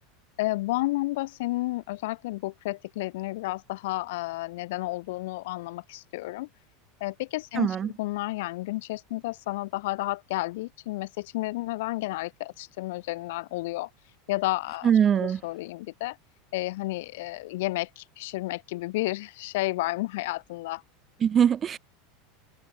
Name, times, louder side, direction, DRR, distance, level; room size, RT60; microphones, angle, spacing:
voice 1, 0.4-6.5 7.0-13.9 14.3-16.2 16.5-20.8, left 19 dB, 70° left, 2.9 m, -31 dB
voice 2, 7.6-7.9 14.8-15.4 21.2-21.8, right 8 dB, 20° right, 0.9 m, -22 dB
supercardioid pair, 165°, 0 cm